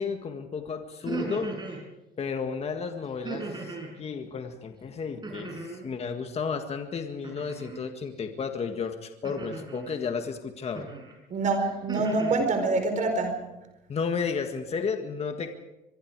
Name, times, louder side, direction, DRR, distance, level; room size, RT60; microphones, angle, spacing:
voice 1, 0.0-1.5 2.2-10.9 13.9-15.5, left 5 dB, 40° left, 6 dB, 1.8 m, -33 dB
sound 1, 0.9-1.8 3.2-3.9 5.2-5.9 7.2-7.8 9.2-9.9 10.7-11.1 11.6-12.4, right 3 dB, 25° right, 7.0 m, -37 dB
voice 2, 11.3-13.4, right 3 dB, 50° right, 6 dB, 4.5 m, -26 dB
24.0 x 23.0 x 4.8 m, 0.97 s
cardioid pair, 110°, 17 cm